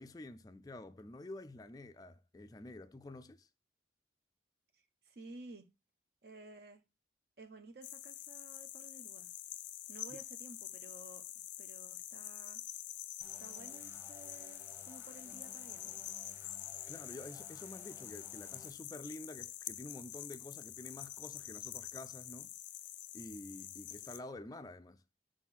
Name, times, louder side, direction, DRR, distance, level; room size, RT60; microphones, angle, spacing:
voice 1, 0.0-3.5 10.1-10.2 16.9-22.5 23.1-25.0, left 2 dB, 20° left, 0.3 m, -49 dB
voice 2, 5.1-5.6 6.2-6.8 7.4-9.3 9.9-11.2 11.6-12.6 13.4-16.0, right 2 dB, 60° right, 0.7 m, -54 dB
sound 1, 7.8-24.2, left 13 dB, 85° left, 0.4 m, -46 dB
sound 2, 13.2-18.7, equal, 15° right, 1.0 m, -59 dB
4.9 x 4.1 x 5.8 m
head